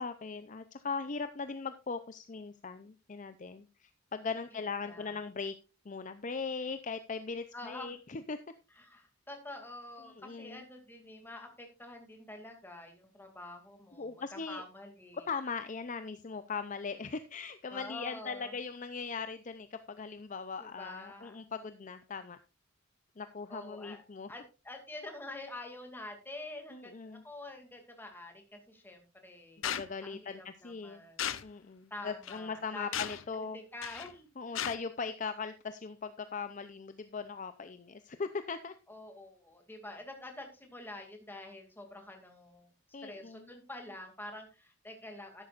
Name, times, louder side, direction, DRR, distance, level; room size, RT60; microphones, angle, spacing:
voice 1, 0.0-5.6 5.9-8.4 10.0-10.6 14.0-14.6 15.3-22.4 23.2-24.3 26.7-27.2 29.6-31.0 31.4-33.6 34.4-38.7 42.9-43.5, left 5 dB, 40° left, 10 dB, 0.5 m, -39 dB
voice 2, 4.5-5.2 7.5-8.0 8.8-15.3 17.7-18.5 20.6-21.4 23.5-24.0 24.3-29.6 30.0-31.3 31.9-33.2 33.5-34.6 38.9-42.7 43.0-45.4, left 2 dB, 10° left, 3 dB, 2.4 m, -47 dB
sound 1, 29.6-29.9 31.2-31.4 32.2-32.4 32.9-33.2 33.8-34.1 34.5-34.7, left 10 dB, 70° left, 0.7 m, -35 dB
13.0 x 11.0 x 2.5 m, 0.29 s
head